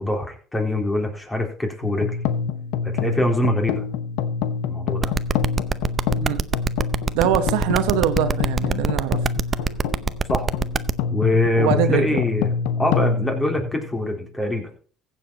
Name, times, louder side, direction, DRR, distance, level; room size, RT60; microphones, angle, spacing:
voice 1, 0.0-2.1 2.8-3.8 4.7-5.1 10.3-10.4 11.1-14.7, left 1 dB, 15° left, 3.8 m, -24 dB
sound 1, 1.8-14.2, left 6 dB, 80° left, 0.9 m, -26 dB
sound 2, 5.0-10.9, right 5 dB, 35° right, 0.7 m, -23 dB
voice 2, 7.1-9.2 11.5-12.2, right 10 dB, 85° right, 1.0 m, -23 dB
15.0 x 7.5 x 4.2 m
supercardioid pair, 85°, 0 cm